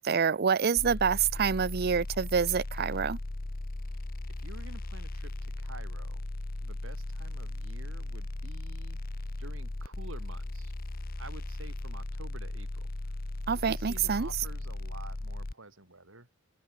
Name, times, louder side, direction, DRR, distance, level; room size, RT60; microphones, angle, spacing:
voice 1, 0.0-3.2 13.5-14.3, right 6 dB, 50° right, 0.6 m, -27 dB
sound 1, 0.8-15.5, left 2 dB, 45° left, 1.0 m, -37 dB
voice 2, 4.3-6.2 6.6-9.1 9.4-10.7 11.2-12.9 13.7-16.3, right 2 dB, 80° right, 5.0 m, -49 dB
head